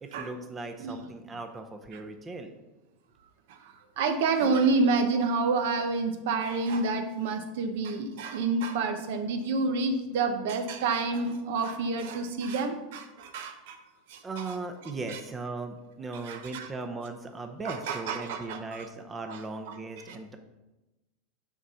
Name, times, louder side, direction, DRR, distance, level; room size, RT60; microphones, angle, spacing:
voice 1, 0.0-2.5 14.2-20.4, right 3 dB, 15° right, 6 dB, 0.6 m, -38 dB
voice 2, 3.5-13.8 14.1-14.5 14.8-15.2 16.1-16.7 17.6-18.9 19.3-19.4 19.7-19.8 20.1-20.4, right 3 dB, 70° right, 8 dB, 0.8 m, -29 dB
6.1 x 4.1 x 5.5 m, 1.0 s
supercardioid pair, 135°, 0 cm